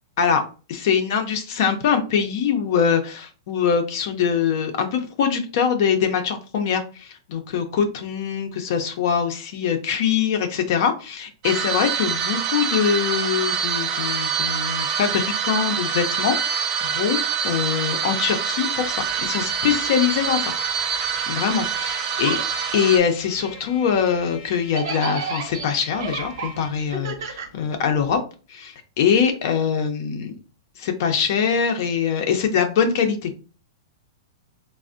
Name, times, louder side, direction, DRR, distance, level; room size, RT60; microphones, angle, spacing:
voice 1, 0.7-20.5 21.2-22.4 22.7-28.2 28.5-30.4 30.8-33.3, left 7 dB, 55° left, 6 dB, 0.5 m, -23 dB
sound 1, 11.4-23.0, right 7 dB, 30° right, 0.4 m, -25 dB
sound 2, 18.8-21.9 22.2-28.2, right 5 dB, 65° right, 0.8 m, -35 dB
Trumpet, 20.7-26.9, left 6 dB, 30° left, 0.8 m, -44 dB
3.3 x 2.0 x 2.5 m, 0.36 s
hypercardioid pair, 140°, 2 cm